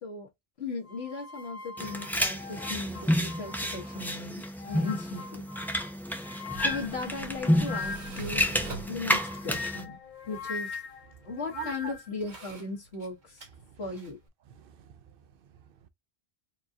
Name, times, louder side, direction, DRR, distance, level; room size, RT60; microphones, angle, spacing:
voice 1, 0.6-5.4 6.6-8.5 8.8-10.0 10.3-10.8 11.2-13.5 13.8-14.2, left 3 dB, 90° left, 1.7 m, -37 dB
sound 1, 0.9-4.1 4.6-8.3 9.1-12.1, left 4 dB, 40° left, 0.6 m, -41 dB
sound 2, 1.8-9.8, equal, ahead, 0.6 m, -30 dB
Tools, 6.3-14.3, right 3 dB, 50° right, 1.1 m, -47 dB
voice 2, 11.1-11.9 13.6-14.0 14.5-15.9, right 9 dB, 65° right, 0.7 m, -46 dB
4.6 x 2.7 x 2.4 m
omnidirectional pair, 1.0 m